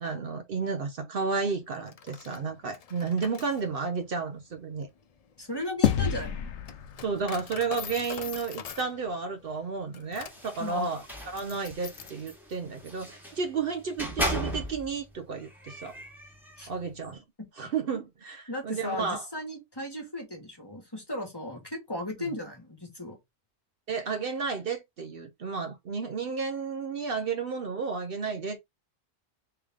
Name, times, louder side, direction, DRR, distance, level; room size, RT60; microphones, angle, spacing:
voice 1, 0.0-4.9 7.0-16.0 16.7-17.2 17.6-19.2 22.2-22.3 23.9-28.6, right 5 dB, 60° right, 0.8 m, -32 dB
Coin (dropping), 1.7-12.3, left 8 dB, 60° left, 0.4 m, -45 dB
voice 2, 5.4-6.5 10.6-10.9 16.6-16.7 18.5-23.2, left 1 dB, 20° left, 1.3 m, -36 dB
sound 1, 5.8-8.4, left 9 dB, 80° left, 0.9 m, -30 dB
sound 2, 10.3-13.4 13.9-15.0 15.4-16.8, equal, ahead, 1.2 m, -36 dB
3.4 x 3.3 x 3.5 m
omnidirectional pair, 1.2 m